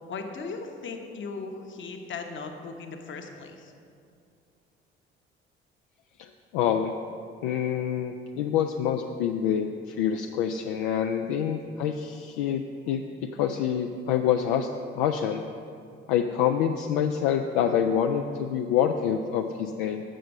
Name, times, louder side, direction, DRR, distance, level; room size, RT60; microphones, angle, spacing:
voice 1, 0.1-3.7, left 4 dB, 40° left, 4 dB, 1.0 m, -37 dB
voice 2, 6.2-6.9 7.4-14.7 14.9-15.4 16.1-20.0, left 8 dB, 65° left, 4 dB, 0.4 m, -26 dB
7.6 x 6.8 x 5.3 m, 2.5 s
figure-of-eight pair, 50°, 30 cm